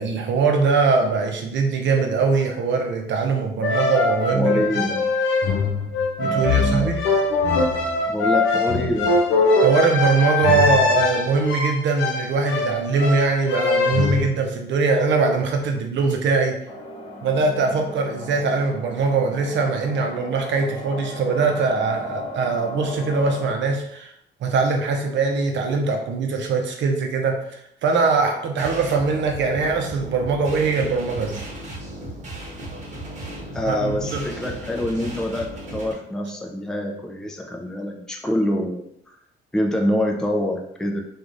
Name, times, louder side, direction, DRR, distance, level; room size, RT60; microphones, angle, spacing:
voice 1, 0.0-4.6 6.2-7.0 9.6-16.6 17.2-24.1 24.4-31.4 33.7-34.2, right 4 dB, 65° right, 3 dB, 0.6 m, -22 dB
sound 1, 3.6-14.3, left 3 dB, 75° left, 0.6 m, -22 dB
voice 2, 4.3-5.1 6.2-6.9 8.1-9.2 33.5-38.9 39.5-41.0, equal, 5° left, 1 dB, 0.4 m, -25 dB
sound 2, 16.7-23.5, left 2 dB, 25° left, 0.8 m, -36 dB
sound 3, 28.6-35.9, right 1 dB, 40° right, 1.1 m, -35 dB
3.0 x 2.4 x 2.5 m, 0.73 s
cardioid pair, 90°, 20 cm